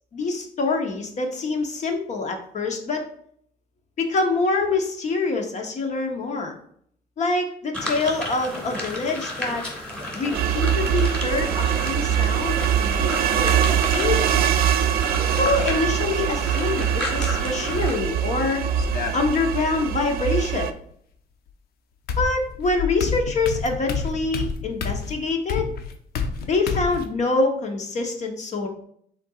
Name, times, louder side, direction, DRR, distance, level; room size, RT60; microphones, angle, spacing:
voice 1, 0.1-3.0 4.0-6.5 7.2-9.7 10.1-13.1 13.4-14.4 15.2-18.7 19.1-20.7 22.2-25.7 26.5-28.7, left 3 dB, 45° left, 4 dB, 0.9 m, -25 dB
sound 1, 7.7-18.0, left 1 dB, 5° left, 1.7 m, -33 dB
sound 2, 10.3-20.7, right 9 dB, 60° right, 0.4 m, -23 dB
sound 3, 15.3-15.9 17.2-17.8 18.8-19.8 21.5-21.6 22.1-27.1, left 5 dB, 65° left, 0.6 m, -30 dB
5.7 x 3.9 x 2.4 m, 0.65 s
cardioid pair, 110°, 17 cm